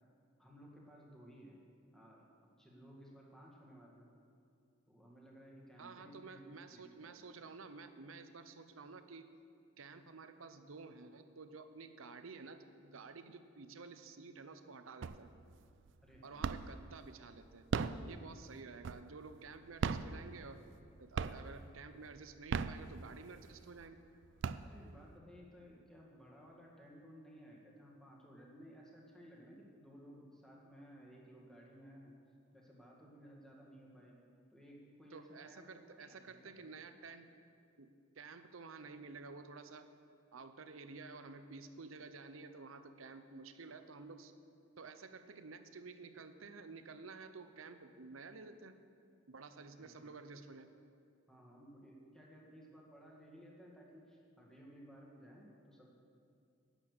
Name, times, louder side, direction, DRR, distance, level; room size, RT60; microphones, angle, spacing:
voice 1, 0.4-1.6 1.9-2.2 2.6-4.1 4.9-7.2 16.0-16.6 24.6-32.2 32.5-36.5 49.8-50.4 51.3-55.9, equal, 5° left, -3 dB, 1.9 m, -57 dB
voice 2, 5.8-9.3 9.8-15.3 16.2-17.7 18.0-20.6 21.0-24.0 35.1-37.3 37.8-39.9 40.3-44.3 44.8-48.8 49.3-50.7, right 4 dB, 80° right, 9 dB, 0.7 m, -52 dB
sound 1, 15.0-15.5 15.9-16.9 17.5-19.3 19.7-20.8 21.1-21.7 22.3-23.4 23.9-24.0 24.2-25.1, right 5 dB, 65° right, 0.4 m, -38 dB
11.0 x 9.0 x 6.6 m, 2.4 s
head